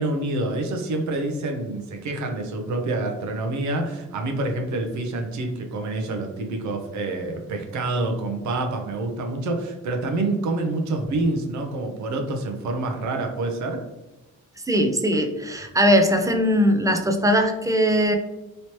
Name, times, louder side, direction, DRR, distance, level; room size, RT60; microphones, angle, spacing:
voice 1, 0.0-13.8, right 2 dB, 70° right, 4 dB, 0.7 m, -27 dB
voice 2, 14.7-18.2, equal, 10° right, 5 dB, 0.4 m, -20 dB
3.1 x 2.9 x 2.9 m, 0.99 s
cardioid pair, 90°, 30 cm